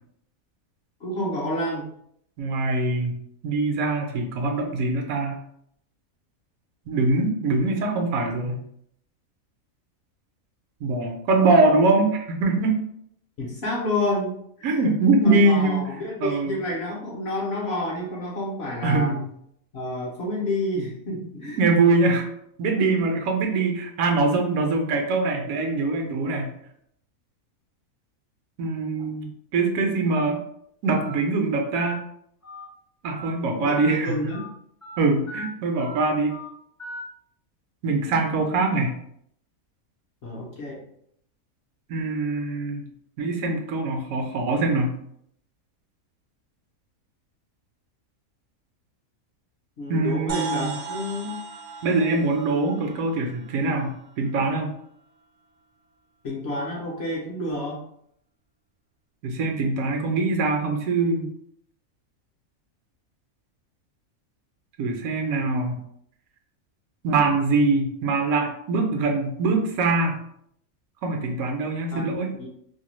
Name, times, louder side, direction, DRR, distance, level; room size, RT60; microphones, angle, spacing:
voice 1, 1.0-1.9 13.4-14.8 15.2-19.2 19.7-21.6 22.9-23.1 33.6-34.5 40.2-40.8 49.8-51.4 56.2-57.8 71.9-72.1 72.4-72.5, left 1 dB, 60° left, -3 dB, 0.8 m, -29 dB
voice 2, 2.4-3.2 3.4-5.4 6.9-8.6 10.8-12.8 14.6-15.8 16.2-16.6 18.8-19.3 21.6-22.3 22.6-26.6 28.6-29.3 29.5-30.4 30.8-32.0 33.0-34.3 35.0-36.3 37.8-39.0 41.9-42.9 43.2-45.0 49.9-50.7 51.8-54.7 59.2-61.3 64.8-65.8 67.0-70.2 71.0-72.3, right 3 dB, 80° right, 3 dB, 1.0 m, -23 dB
Telephone, 30.1-30.2 30.9-31.1 31.7-31.9 32.4-32.6 33.1-33.3 33.7-33.9 34.3-34.5 34.8-35.0 35.3-35.4 35.8-36.0 36.3-36.5 36.8-37.0, equal, 20° left, 0.4 m, -38 dB
sound 1, 50.3-54.0, right 5 dB, 60° right, 0.6 m, -36 dB
2.7 x 2.2 x 3.0 m, 0.70 s
omnidirectional pair, 1.5 m